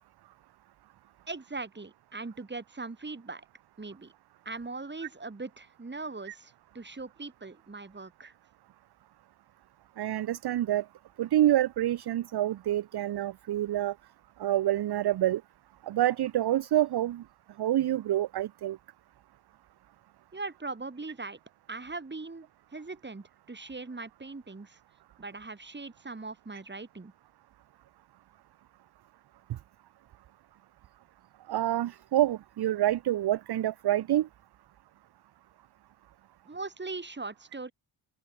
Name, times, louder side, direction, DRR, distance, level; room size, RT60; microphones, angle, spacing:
voice 1, 1.3-3.4 3.8-4.1 4.4-8.3 20.3-21.4 21.7-24.8 25.2-27.1 36.5-37.7, right 3 dB, 20° right, 4.6 m, -40 dB
voice 2, 10.0-10.8 11.2-13.9 14.4-15.4 15.8-17.2 17.6-18.8 31.5-34.3, right 13 dB, 55° right, 0.6 m, -27 dB
open air
wide cardioid pair, 145°, 47 cm